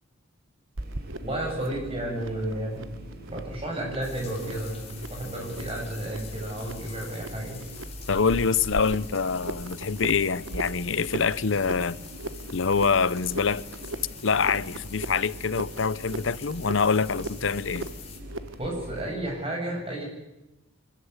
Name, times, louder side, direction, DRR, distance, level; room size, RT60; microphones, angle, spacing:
sound 1, 0.8-19.1, equal, 55° right, 4.1 m, -43 dB
sound 2, 0.8-18.8, right 2 dB, 70° right, 1.2 m, -40 dB
voice 1, 1.2-2.9 3.3-7.6 18.6-20.0, right 1 dB, 30° right, 7.8 m, -32 dB
sound 3, 4.0-18.2, left 7 dB, 30° left, 4.2 m, -46 dB
voice 2, 8.1-12.0 12.5-13.6 14.2-17.9, left 5 dB, 65° left, 0.8 m, -25 dB
25.5 x 14.0 x 9.6 m
head